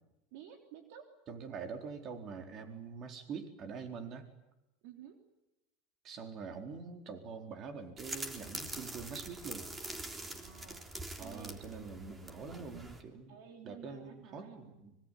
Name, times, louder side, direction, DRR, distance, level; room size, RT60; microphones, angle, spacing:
voice 1, 0.3-1.1 4.8-5.2 10.3-10.9 11.2-11.6 13.3-14.7, right 8 dB, 70° right, 5 dB, 3.3 m, -52 dB
voice 2, 1.3-4.3 6.0-9.7 11.2-13.4 13.6-15.0, right 5 dB, 45° right, 6 dB, 4.3 m, -45 dB
sound 1, 8.0-13.0, right 2 dB, 20° right, 3.5 m, -44 dB
25.0 x 22.5 x 9.4 m, 0.93 s
supercardioid pair, 110°, 0 cm